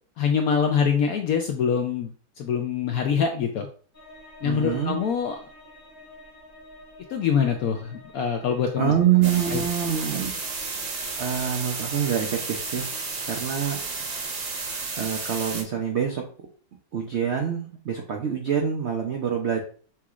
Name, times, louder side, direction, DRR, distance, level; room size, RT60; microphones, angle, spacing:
voice 1, 0.2-3.7 4.4-5.4 7.1-8.9 9.5-9.6, left 7 dB, 75° left, 4 dB, 0.8 m, -24 dB
sound 1, 3.9-13.4, left 1 dB, 25° left, 0.3 m, -50 dB
voice 2, 4.4-4.9 8.8-10.3 11.2-13.0 13.2-14.0 14.9-16.2 16.9-19.6, right 9 dB, 90° right, 1 dB, 0.5 m, -25 dB
sound 2, 9.2-15.6, right 4 dB, 55° right, 1.0 m, -32 dB
5.9 x 2.9 x 2.4 m, 0.42 s
omnidirectional pair, 2.0 m